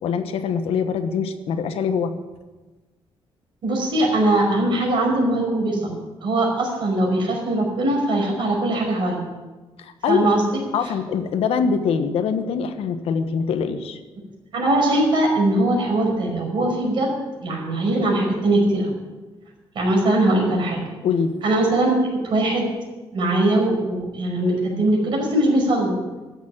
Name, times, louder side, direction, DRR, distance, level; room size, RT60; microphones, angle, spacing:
voice 1, 0.0-2.1 9.8-10.3 10.7-14.0 21.0-21.3, left 6 dB, 85° left, 8 dB, 1.2 m, -23 dB
voice 2, 3.6-9.2 10.1-10.6 14.5-17.1 17.4-18.9 19.8-20.8 21.4-22.7 23.1-26.0, right 1 dB, 55° right, -1 dB, 5.3 m, -21 dB
14.0 x 7.3 x 8.9 m, 1.2 s
cardioid pair, 160°, 10 cm